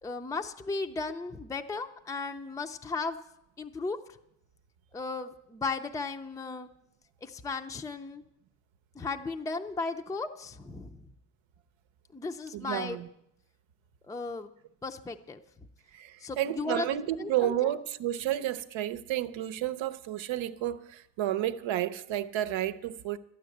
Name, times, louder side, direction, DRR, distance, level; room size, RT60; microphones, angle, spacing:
voice 1, 0.0-3.2 3.6-4.0 4.9-6.7 7.2-8.2 9.0-11.1 12.1-13.0 14.0-14.5 14.8-15.4 16.2-16.9 17.2-17.7, left 3 dB, 10° left, 0.5 m, -35 dB
voice 2, 12.5-13.1 15.9-23.2, right 12 dB, 80° right, 0.8 m, -31 dB
13.0 x 9.3 x 7.8 m
cardioid pair, 115°, 45 cm